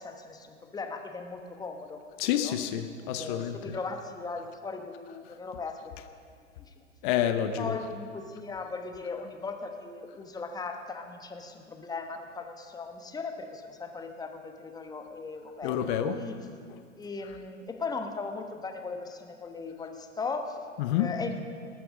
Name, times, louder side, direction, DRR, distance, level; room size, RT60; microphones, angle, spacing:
voice 1, 0.0-2.6 3.1-5.9 6.6-6.8 7.6-16.5 17.0-20.7 20.9-21.4, left 4 dB, 10° left, 5 dB, 1.1 m, -38 dB
voice 2, 2.2-3.6 7.0-7.7 15.6-16.2 20.8-21.1, left 10 dB, 40° left, 9 dB, 0.9 m, -28 dB
19.0 x 9.1 x 6.3 m, 2.1 s
figure-of-eight pair, 110°, 38 cm